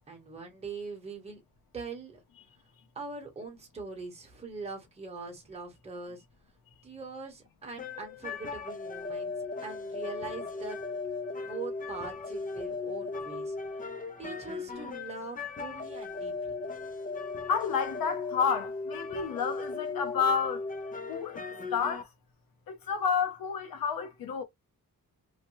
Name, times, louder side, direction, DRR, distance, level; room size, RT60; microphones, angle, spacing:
voice 1, 0.1-1.4 1.7-2.2 2.9-6.2 6.8-10.8 11.4-13.6 14.2-16.5, right 4 dB, 20° right, 1.0 m, -42 dB
sound 1, 7.8-22.0, left 4 dB, 25° left, 0.4 m, -37 dB
voice 2, 17.5-20.6 21.1-21.4 21.7-22.1 22.7-24.4, left 6 dB, 85° left, 0.9 m, -30 dB
3.1 x 2.1 x 3.0 m
wide cardioid pair, 175°, 34 cm